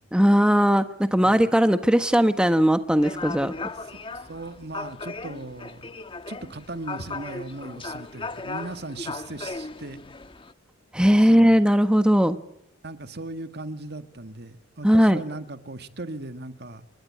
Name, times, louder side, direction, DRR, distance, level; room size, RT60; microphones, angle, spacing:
voice 1, 0.1-3.7 10.9-12.4 14.8-15.2, equal, 5° right, 9 dB, 1.3 m, -19 dB
sound 1, 3.0-10.5, left 3 dB, 25° left, 1.3 m, -37 dB
voice 2, 3.6-5.9 6.3-10.0 11.2-11.6 12.8-16.8, right 2 dB, 60° right, 9 dB, 2.0 m, -38 dB
30.0 x 22.0 x 8.9 m, 0.79 s
head